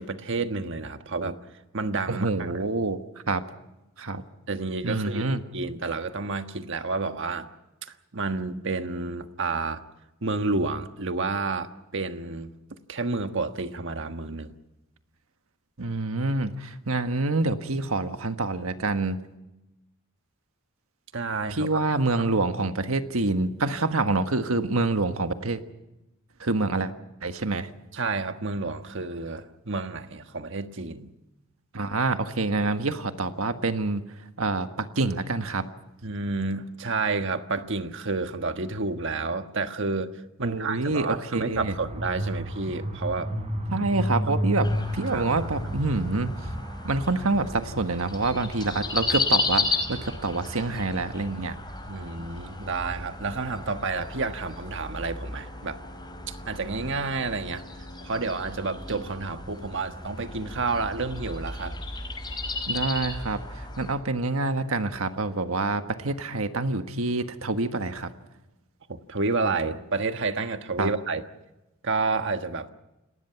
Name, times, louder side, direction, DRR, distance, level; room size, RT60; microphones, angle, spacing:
voice 1, 0.0-1.4 1.7-2.6 4.5-7.5 8.1-9.8 10.2-12.5 12.9-14.5 21.1-21.8 22.2-22.3 27.9-31.1 36.0-40.1 40.4-43.3 44.3-44.4 45.0-45.3 45.6-45.7 51.9-55.8 56.3-57.7 58.0-61.8 68.9-71.2 71.8-72.7, right 3 dB, 65° right, 8 dB, 1.4 m, -30 dB
voice 2, 2.1-3.0 3.3-3.4 4.0-4.2 4.8-5.4 15.8-19.2 21.5-25.6 26.4-26.9 27.2-27.7 31.7-34.0 34.4-35.7 40.4-41.7 43.7-46.3 46.8-51.5 62.7-68.1 70.8-70.9, right 3 dB, 90° right, 8 dB, 1.5 m, -27 dB
sound 1, 41.5-55.4, equal, 30° right, 4.4 m, -34 dB
sound 2, 44.6-63.9, left 3 dB, 20° left, 5.3 m, -34 dB
28.5 x 19.5 x 5.9 m, 0.94 s
head